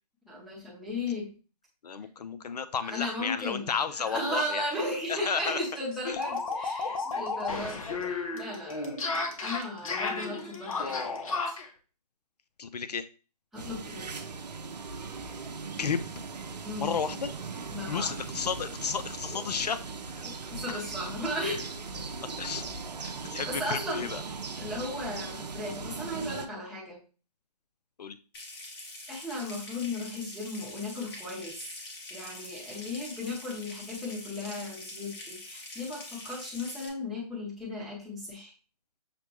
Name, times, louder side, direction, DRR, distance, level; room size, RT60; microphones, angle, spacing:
voice 1, 0.3-1.3 2.3-2.4 2.8-3.7 4.0-8.9 9.4-11.6 13.5-14.1 16.6-17.0 17.7-18.1 19.3-19.4 20.2-21.7 23.4-24.1 24.6-27.0 29.1-31.8 32.1-38.5, left 1 dB, ahead, -6 dB, 0.9 m, -36 dB
voice 2, 1.8-4.7 5.1-5.6 6.0-6.2 12.6-13.1 15.8-16.1 16.8-17.3 17.9-20.2 20.7-20.8 22.4-22.6 23.0-24.2 28.0-28.2, left 6 dB, 75° left, 12 dB, 0.4 m, -32 dB
sound 1, 4.7-4.8 5.1-5.2 5.5-11.7, left 4 dB, 55° left, 0.9 m, -33 dB
sound 2, 13.6-26.5, right 4 dB, 80° right, 0.6 m, -39 dB
Water tap faucet / Sink (filling or washing) / Trickle dribble, 28.3-36.9, left 2 dB, 35° left, 1.2 m, -44 dB
6.5 x 2.2 x 3.0 m, 0.35 s
figure-of-eight pair, 145°, 21 cm